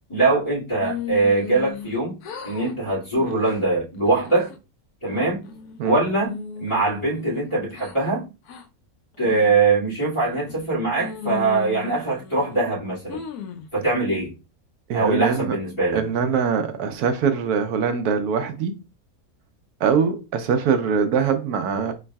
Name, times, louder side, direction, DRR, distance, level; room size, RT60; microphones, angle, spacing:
voice 1, 0.1-2.2 2.4-4.5 5.0-5.4 5.8-8.2 9.2-13.2 13.7-14.3 14.9-16.0, right 3 dB, 20° left, 2.2 m, -22 dB
sound 1, 0.8-2.0 2.2-2.7 3.1-3.5 4.0-4.6 5.1-5.8 6.2-8.0 8.5-8.6 9.2-9.6 10.2-10.7 11.0-12.6 13.1-13.7, left 7 dB, 90° left, 1.1 m, -36 dB
voice 2, 14.9-15.6 15.9-18.7 19.8-21.9, right 6 dB, 85° right, 1.1 m, -22 dB
3.9 x 3.6 x 2.2 m
omnidirectional pair, 1.6 m